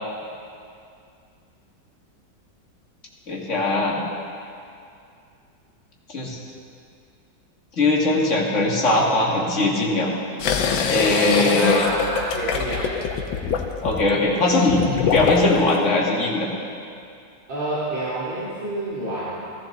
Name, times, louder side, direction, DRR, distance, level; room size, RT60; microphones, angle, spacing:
voice 1, 3.3-4.0 6.1-6.4 7.8-10.1 10.9-12.0 13.8-16.5, left 2 dB, 40° left, -3 dB, 2.1 m, -20 dB
sound 1, 10.4-15.8, left 6 dB, 85° left, 1.6 m, -24 dB
voice 2, 11.3-13.0 17.5-19.4, right 1 dB, 80° right, -12 dB, 3.6 m, -28 dB
15.0 x 14.5 x 3.9 m, 2.4 s
omnidirectional pair, 2.1 m